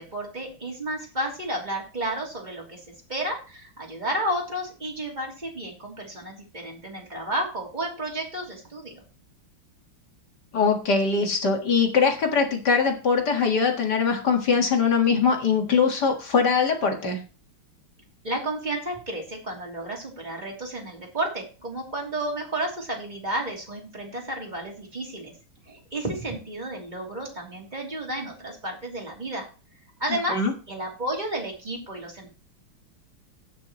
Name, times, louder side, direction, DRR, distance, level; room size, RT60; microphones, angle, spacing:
voice 1, 0.0-2.8 3.1-8.9 18.2-25.3 25.7-29.5 30.0-30.4 30.7-32.3, right 1 dB, 20° right, -1 dB, 3.0 m, -32 dB
voice 2, 10.5-17.2 30.3-30.5, left 5 dB, 55° left, 3 dB, 2.3 m, -22 dB
17.5 x 6.2 x 3.1 m, 0.35 s
omnidirectional pair, 2.3 m